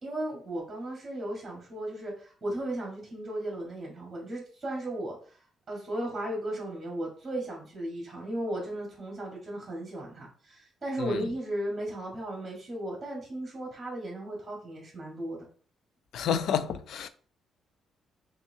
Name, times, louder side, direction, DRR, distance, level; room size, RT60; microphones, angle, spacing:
voice 1, 0.0-5.4 5.7-15.5, right 1 dB, 20° right, 1.6 m, -35 dB
voice 2, 16.1-17.1, left 8 dB, 65° left, 0.4 m, -29 dB
5.5 x 2.8 x 2.8 m
cardioid pair, 155°, 0 cm